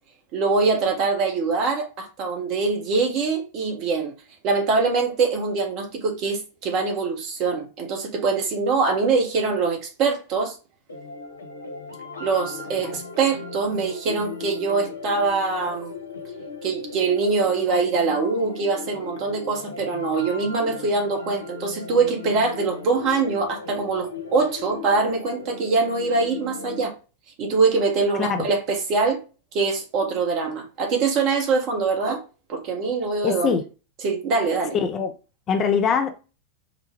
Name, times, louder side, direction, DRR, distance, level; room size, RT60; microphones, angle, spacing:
voice 1, 0.3-4.1 4.4-10.5 12.2-15.9 16.6-26.9 27.4-29.2 29.5-32.2 32.5-33.6 34.0-34.8, right 4 dB, 40° right, 1.0 m, -23 dB
sound 1, 10.9-26.9, left 4 dB, 75° left, 0.6 m, -37 dB
voice 2, 33.2-33.6 34.7-35.1 35.5-36.1, left 6 dB, 30° left, 0.5 m, -22 dB
4.9 x 2.3 x 2.9 m
figure-of-eight pair, 90°, 0 cm